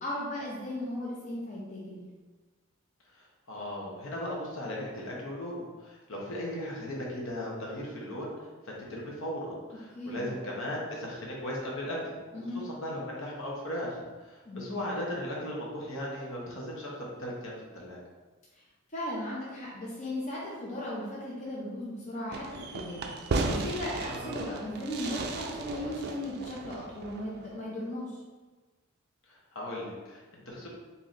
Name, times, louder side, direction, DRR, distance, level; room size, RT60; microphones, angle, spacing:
voice 1, 0.0-2.0 9.9-10.3 12.3-12.6 14.5-14.8 18.6-18.7 18.9-23.1 23.4-28.2, left 1 dB, 35° left, -5 dB, 0.6 m, -37 dB
voice 2, 3.1-8.3 8.7-12.2 12.6-18.0 24.1-24.3 29.3-30.7, left 1 dB, 65° left, -3 dB, 0.9 m, -37 dB
Fireworks, 22.3-27.5, right 3 dB, 50° right, 0.3 m, -35 dB
3.1 x 2.8 x 3.9 m, 1.3 s
head